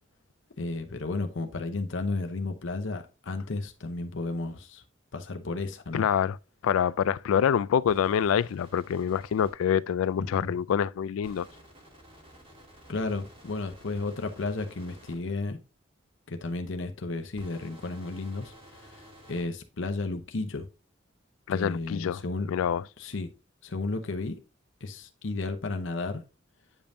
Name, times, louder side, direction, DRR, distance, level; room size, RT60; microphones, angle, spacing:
voice 1, 0.6-4.8 5.1-6.1 10.2-10.6 12.9-15.6 16.3-20.7 21.5-22.5 23.0-23.3 23.6-24.4 24.8-26.2, left 3 dB, 65° left, 0.8 m, -33 dB
voice 2, 5.9-6.4 6.6-11.5 21.5-22.2 22.5-22.8, left 8 dB, 90° left, 0.3 m, -26 dB
sound 1, 7.9-9.5 11.2-15.2 17.3-19.4, equal, 30° right, 2.6 m, -52 dB
8.6 x 5.3 x 2.6 m
head